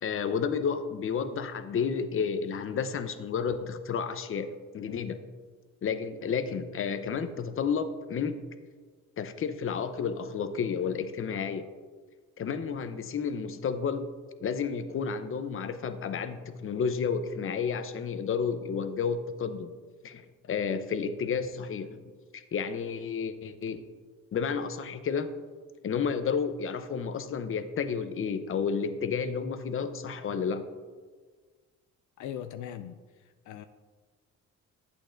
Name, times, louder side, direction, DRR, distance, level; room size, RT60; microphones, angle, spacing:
voice 1, 0.0-5.2 5.8-8.4 9.2-11.7 12.4-14.1 14.4-19.7 20.0-22.0 22.3-23.8 24.3-25.3 25.8-30.6, left 6 dB, 45° left, 9 dB, 0.7 m, -31 dB
voice 2, 32.2-33.0 33.5-33.7, left 10 dB, 75° left, 9 dB, 0.4 m, -39 dB
11.5 x 8.2 x 2.6 m, 1.5 s
cardioid pair, 90°, 30 cm